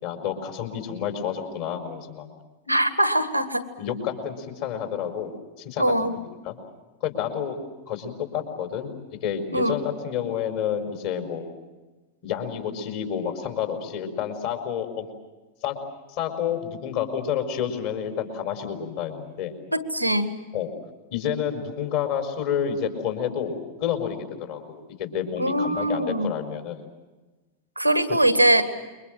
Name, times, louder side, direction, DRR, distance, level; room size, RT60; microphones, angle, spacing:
voice 1, 0.0-2.3 3.8-6.6 7.0-7.6 7.9-11.5 12.2-15.1 15.6-15.8 16.1-19.5 20.5-20.7 21.1-26.8, left 8 dB, 50° left, 5 dB, 4.6 m, -29 dB
voice 2, 2.7-3.6 5.8-6.1 9.5-9.7 19.7-20.3 25.4-26.3 27.7-28.6, right 1 dB, 90° right, 11 dB, 1.8 m, -22 dB
28.0 x 23.5 x 7.6 m, 1.2 s
figure-of-eight pair, 90°, 0 cm